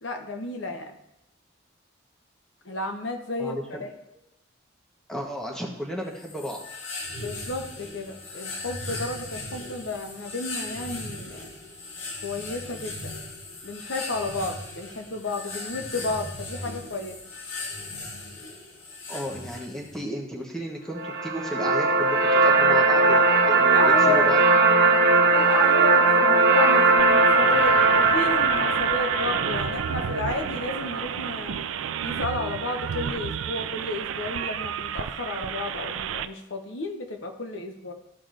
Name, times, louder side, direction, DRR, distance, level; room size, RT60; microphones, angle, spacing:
voice 1, 0.0-1.0 2.6-3.9 7.2-11.5 12.2-13.1 13.6-17.2 23.5-24.5 25.3-31.6 32.0-37.9, left 2 dB, 65° left, 4 dB, 0.9 m, -32 dB
voice 2, 3.4-3.8 5.1-6.6 19.1-24.4, equal, 5° left, -1 dB, 1.0 m, -33 dB
sound 1, 6.2-20.0, left 2 dB, 90° left, 1.9 m, -38 dB
sound 2, 21.0-31.0, right 3 dB, 50° right, 0.8 m, -20 dB
sound 3, 27.0-36.3, right 8 dB, 80° right, 0.4 m, -32 dB
13.5 x 4.9 x 2.5 m, 0.85 s
head